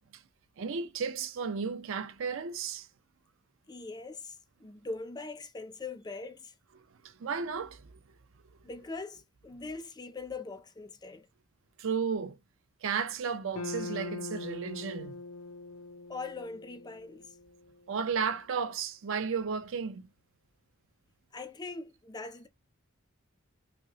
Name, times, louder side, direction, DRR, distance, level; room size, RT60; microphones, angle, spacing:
voice 1, 0.6-2.9 7.0-8.0 11.8-12.4 12.8-15.2 17.9-20.1, right 6 dB, 65° right, 0.5 m, -33 dB
voice 2, 3.7-6.5 8.6-11.3 16.1-17.4 21.3-22.5, left 3 dB, 20° left, 0.4 m, -41 dB
sound 1, 13.5-17.9, left 3 dB, 70° left, 0.6 m, -42 dB
5.1 x 2.0 x 2.8 m
head